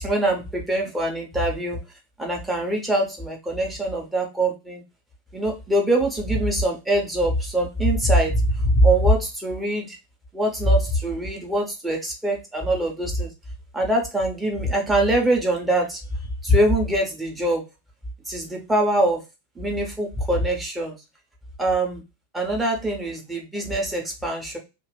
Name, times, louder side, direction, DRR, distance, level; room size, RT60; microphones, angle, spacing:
voice 1, 0.0-1.8 2.2-4.8 5.3-10.0 10.3-13.3 13.7-16.0 16.4-17.6 18.3-19.2 19.5-21.0 21.6-22.0 22.3-24.6, right 1 dB, 10° right, 0 dB, 1.1 m, -23 dB
2.8 x 2.4 x 3.4 m, 0.26 s
figure-of-eight pair, 90°, 0 cm